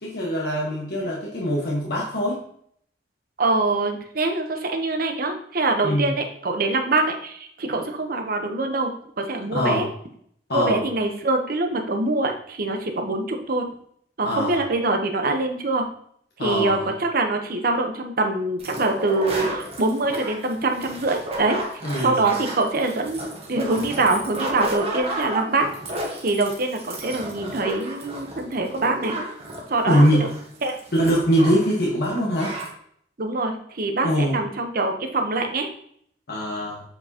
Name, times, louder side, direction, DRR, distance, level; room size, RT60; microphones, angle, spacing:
voice 1, 0.0-2.4 5.8-6.1 9.5-9.8 10.5-10.8 14.2-14.6 16.4-16.9 21.8-22.2 29.9-30.3 30.9-32.6 34.0-34.4 36.3-36.8, equal, 60° left, -3 dB, 1.2 m, -22 dB
voice 2, 3.4-8.9 9.2-9.9 10.5-13.7 14.2-15.9 16.4-21.6 22.0-25.7 26.2-29.2 29.7-30.0 30.6-30.8 33.2-35.7, right 2 dB, 55° right, 4 dB, 0.9 m, -24 dB
sound 1, 18.6-31.8 32.0-32.1 32.3-32.7, right 1 dB, 35° right, 1.2 m, -32 dB
7.7 x 4.6 x 2.9 m, 0.66 s
head